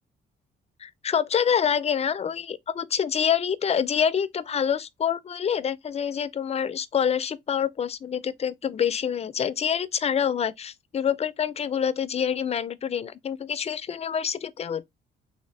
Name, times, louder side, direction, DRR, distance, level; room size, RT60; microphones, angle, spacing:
voice 1, 0.8-14.8, left 8 dB, 30° left, 0.4 m, -26 dB
3.4 x 2.5 x 3.1 m
cardioid pair, 90°, 20 cm